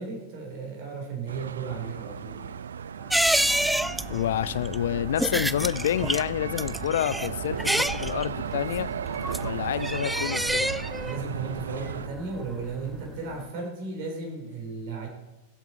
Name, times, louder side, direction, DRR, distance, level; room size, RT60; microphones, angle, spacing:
voice 1, 0.0-2.6 11.0-15.1, right 4 dB, 50° right, 1 dB, 3.7 m, -35 dB
sound 1, 1.3-12.1, right 7 dB, 65° right, 0.3 m, -36 dB
sound 2, 2.9-13.4, left 1 dB, 20° right, 4.2 m, -44 dB
sound 3, 3.1-13.1 13.3-13.4, right 1 dB, ahead, 0.5 m, -29 dB
voice 2, 4.1-8.9 9.4-10.7, left 10 dB, 60° left, 18 dB, 0.5 m, -28 dB
22.0 x 8.2 x 4.3 m, 1.0 s
figure-of-eight pair, 90°, 0 cm